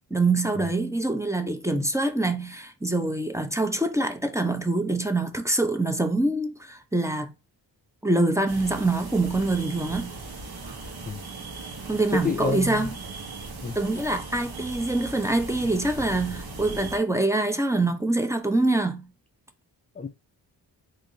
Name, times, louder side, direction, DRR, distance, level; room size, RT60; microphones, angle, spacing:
voice 1, 0.1-7.3 8.0-10.1 11.9-12.9 13.7-19.0, right 2 dB, 5° right, 0.8 m, -25 dB
sound 1, 8.5-17.0, right 3 dB, 55° right, 1.2 m, -38 dB
voice 2, 12.1-12.9 13.6-13.8 19.9-20.1, left 4 dB, 20° left, 0.5 m, -29 dB
3.4 x 2.8 x 4.0 m
cardioid pair, 45°, 44 cm